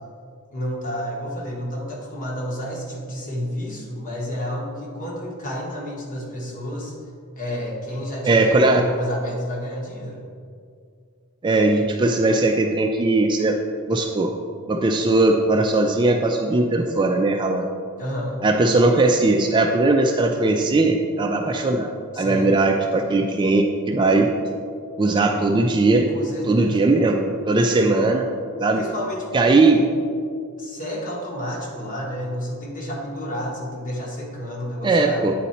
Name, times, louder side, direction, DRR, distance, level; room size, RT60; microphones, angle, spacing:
voice 1, 0.5-6.9 7.4-10.2 18.0-18.5 22.1-22.6 26.1-26.8 27.7-28.1 28.7-29.9 30.6-35.3, equal, 35° left, -2 dB, 1.2 m, -30 dB
voice 2, 8.3-8.8 11.4-13.6 13.9-14.3 14.7-17.7 18.4-21.9 22.2-24.3 25.0-26.1 26.5-28.3 28.6-28.8 29.3-29.8 34.8-35.3, right 2 dB, 20° right, 3 dB, 0.3 m, -19 dB
9.0 x 4.2 x 4.2 m, 2.3 s
head